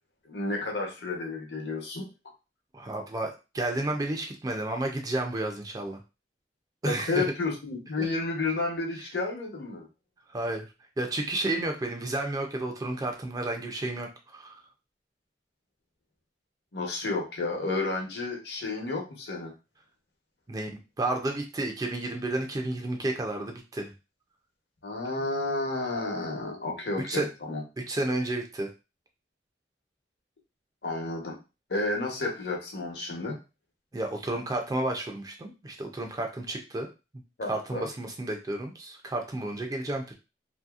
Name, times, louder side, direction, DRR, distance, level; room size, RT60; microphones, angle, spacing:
voice 1, 0.2-2.0 6.8-9.9 16.7-19.5 24.8-27.6 30.8-31.4 31.7-33.4 37.4-37.9, left 3 dB, 70° left, 0 dB, 0.9 m, -31 dB
voice 2, 2.7-6.0 6.8-7.2 8.0-8.1 10.3-10.7 11.0-14.5 20.5-20.7 21.0-23.9 27.1-27.3 27.8-28.7 33.9-36.9 37.5-40.1, right 2 dB, 20° right, 3 dB, 0.4 m, -31 dB
2.7 x 2.7 x 2.3 m, 0.29 s
head